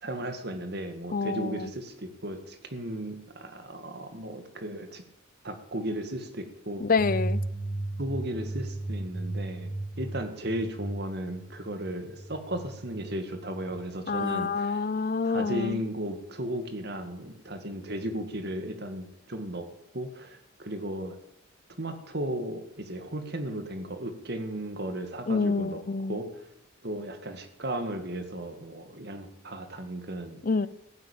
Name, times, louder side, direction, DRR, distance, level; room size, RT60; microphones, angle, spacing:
voice 1, 0.0-5.0 5.4-6.9 8.0-9.7 10.0-14.8 15.2-19.7 19.9-21.2 21.8-25.8 26.1-26.5 26.8-30.4, right 1 dB, 55° right, 2.1 m, -35 dB
voice 2, 1.1-1.7 6.8-7.4 14.1-15.8 25.3-26.2 30.4-30.7, left 4 dB, 45° left, 0.6 m, -27 dB
sound 1, 7.0-13.8, right 1 dB, 20° right, 2.2 m, -36 dB
15.5 x 10.0 x 8.6 m
head